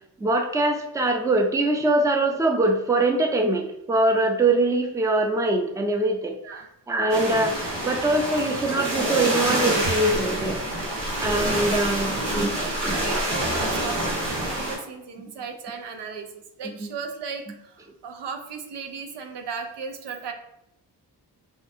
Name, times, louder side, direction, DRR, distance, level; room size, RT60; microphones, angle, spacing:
voice 1, 0.2-6.3 6.9-7.6 7.8-10.6 11.2-12.5 12.8-13.2 16.7-16.9, right 2 dB, 10° right, 4 dB, 0.5 m, -23 dB
sound 1, 7.1-14.8, right 1 dB, 85° right, 1.1 m, -27 dB
voice 2, 12.3-20.3, right 5 dB, 70° right, 5 dB, 0.6 m, -36 dB
3.6 x 2.3 x 2.6 m, 0.80 s
supercardioid pair, 40°, 43 cm